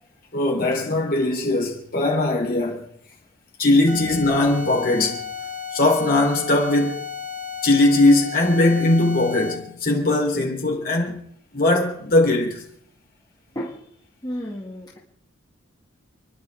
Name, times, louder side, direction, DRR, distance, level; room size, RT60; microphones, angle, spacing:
voice 1, 0.3-2.9 3.6-5.2 5.7-7.0 7.6-11.2 11.5-12.6, left 2 dB, 50° left, 3.7 m, -20 dB
sound 1, 3.9-9.8, left 6 dB, 70° right, 1.8 m, -33 dB
voice 2, 14.2-15.0, equal, 20° left, 2.2 m, -32 dB
30.0 x 11.0 x 3.6 m
head